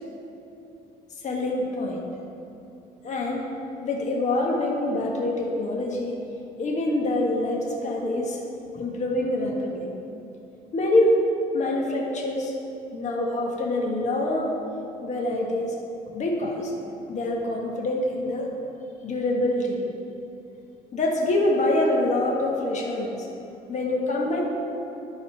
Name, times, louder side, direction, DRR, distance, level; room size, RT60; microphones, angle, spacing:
voice 1, 1.2-2.0 3.0-3.4 3.8-6.2 6.6-8.4 8.7-9.9 10.7-11.2 11.5-12.5 12.9-14.6 15.0-15.7 16.1-16.7 17.1-18.5 19.0-19.8 20.9-23.1 23.7-24.4, left 1 dB, 45° left, -1 dB, 1.4 m, -25 dB
11.5 x 4.1 x 5.6 m, 2.8 s
cardioid pair, 110°, 17 cm